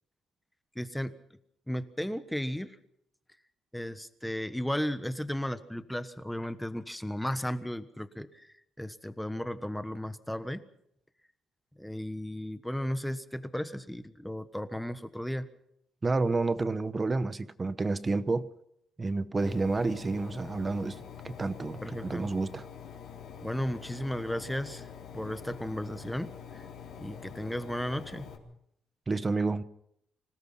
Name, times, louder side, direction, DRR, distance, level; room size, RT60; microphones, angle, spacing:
voice 1, 0.7-1.1 1.7-2.8 3.7-10.6 11.8-15.5 21.8-22.3 23.4-24.9 25.1-26.7 27.0-28.3, equal, 5° left, 11 dB, 1.3 m, -35 dB
voice 2, 16.0-18.5 19.0-21.0 21.2-22.6 29.1-29.6, right 3 dB, 20° right, 14 dB, 0.9 m, -29 dB
Engine, 19.4-28.4, left 7 dB, 75° left, 3.9 m, -46 dB
26.0 x 18.0 x 5.8 m, 0.75 s
cardioid pair, 140°, 0 cm